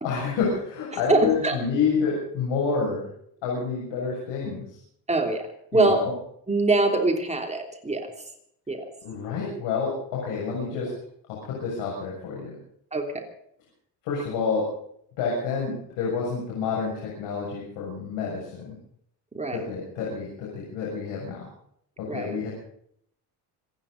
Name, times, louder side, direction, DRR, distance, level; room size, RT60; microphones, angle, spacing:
voice 1, 0.0-3.1 3.4-4.6 5.7-6.1 9.0-10.9 11.3-12.5 14.0-14.6 15.2-18.8 19.5-21.5 22.0-22.5, left 5 dB, 85° left, -3 dB, 7.1 m, -28 dB
voice 2, 0.9-1.6 5.1-5.4 5.7-6.0 6.5-8.1 8.7-8.9 10.7-10.8 12.9-13.3 19.3-19.7 22.1-22.4, right 2 dB, 15° right, 3 dB, 3.2 m, -24 dB
27.0 x 10.0 x 5.2 m, 0.68 s
cardioid pair, 110°, 41 cm